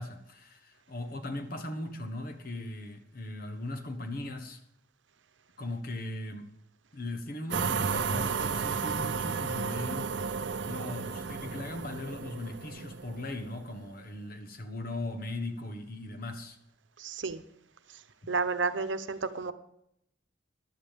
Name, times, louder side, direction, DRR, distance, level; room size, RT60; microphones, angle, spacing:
voice 1, 0.0-4.6 5.6-6.5 6.9-16.6 18.2-18.3, left 1 dB, 55° left, 7 dB, 1.4 m, -39 dB
sound 1, 7.5-13.7, right 5 dB, 70° right, 0.6 m, -33 dB
voice 2, 17.0-17.4 18.3-19.5, right 4 dB, 85° right, 11 dB, 0.9 m, -31 dB
15.0 x 11.0 x 3.6 m, 0.76 s
head